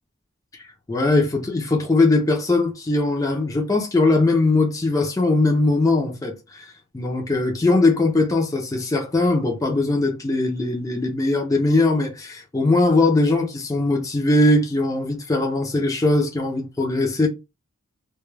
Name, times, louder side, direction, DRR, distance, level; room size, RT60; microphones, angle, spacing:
voice 1, 0.9-17.3, left 2 dB, 15° left, 0.4 m, -20 dB
2.2 x 2.1 x 3.1 m
head